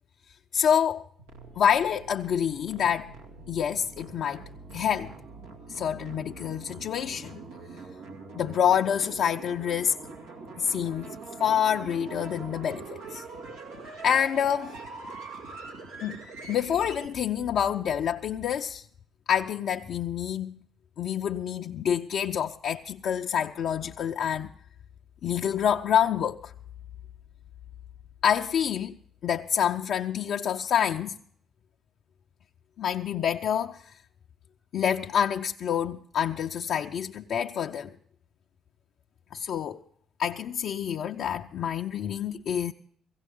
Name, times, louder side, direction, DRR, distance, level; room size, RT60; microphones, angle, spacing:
voice 1, 0.5-1.0 1.6-3.1 3.5-4.4 4.7-5.1 5.7-7.4 8.3-9.9 10.6-13.2 14.0-14.7 16.0-16.2 16.5-18.8 19.3-20.6 21.0-24.5 25.2-26.5 28.2-29.0 29.2-31.1 32.8-33.8 34.7-37.9 39.3-39.8 40.2-42.7, left 8 dB, 65° left, 0.5 m, -27 dB
sound 1, 1.2-17.1, right 3 dB, 90° right, 2.2 m, -43 dB
16.5 x 16.5 x 3.6 m
hypercardioid pair, 50°, 0 cm